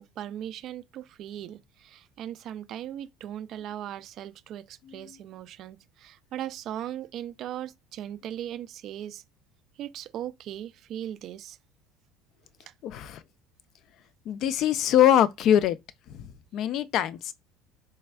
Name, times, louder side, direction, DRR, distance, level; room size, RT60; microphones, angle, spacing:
voice 1, 0.0-9.2 9.8-11.6 12.7-12.8, right 11 dB, 55° right, 0.3 m, -38 dB
voice 2, 12.8-13.2 14.3-15.8 16.1-17.3, left 11 dB, 55° left, 0.3 m, -23 dB
3.3 x 3.3 x 2.2 m
supercardioid pair, 110°, 0 cm